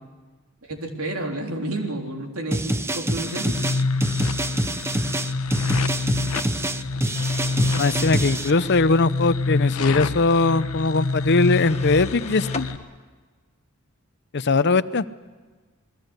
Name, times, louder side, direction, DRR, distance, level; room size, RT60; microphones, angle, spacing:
voice 1, 0.6-3.6, right 1 dB, 85° right, 2 dB, 3.5 m, -30 dB
sound 1, 2.5-8.5, right 1 dB, 10° right, 0.8 m, -26 dB
sound 2, 3.3-12.8, left 3 dB, 80° left, 1.1 m, -27 dB
sound 3, 7.1-8.9 11.4-12.7, left 4 dB, 30° left, 1.5 m, -39 dB
voice 2, 7.8-12.7 14.3-15.0, left 3 dB, 55° left, 14 dB, 0.7 m, -20 dB
28.5 x 21.0 x 8.1 m, 1.3 s
head